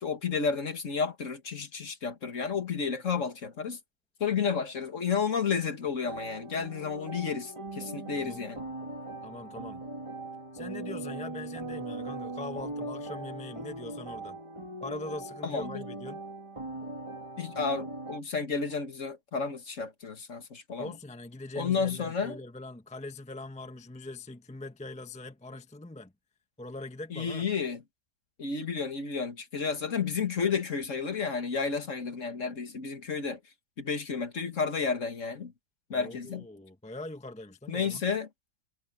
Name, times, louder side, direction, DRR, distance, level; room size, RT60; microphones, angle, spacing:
voice 1, 0.0-3.8 4.2-8.7 15.4-15.7 17.4-20.9 21.6-22.4 27.1-27.8 28.4-33.4 33.8-35.5 35.9-36.5 37.7-38.3, left 5 dB, 45° left, 1.9 m, -31 dB
sound 1, 6.1-18.2, right 2 dB, 15° right, 1.8 m, -40 dB
voice 2, 9.2-9.8 10.5-14.4 14.8-16.2 20.8-26.1 26.6-27.4 35.9-38.0, left 2 dB, 10° left, 0.5 m, -42 dB
omnidirectional pair, 2.0 m